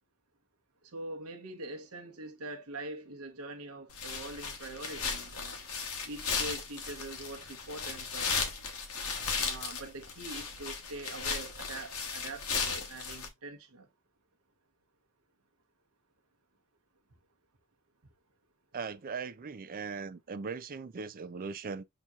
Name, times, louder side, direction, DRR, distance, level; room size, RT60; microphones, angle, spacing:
voice 1, 0.9-5.6 6.1-8.3 9.4-13.9, right 2 dB, 70° right, 0.9 m, -43 dB
sound 1, 3.9-13.3, left 5 dB, 70° left, 1.0 m, -36 dB
voice 2, 18.7-21.8, right 5 dB, 40° right, 0.4 m, -39 dB
5.9 x 2.8 x 2.4 m
head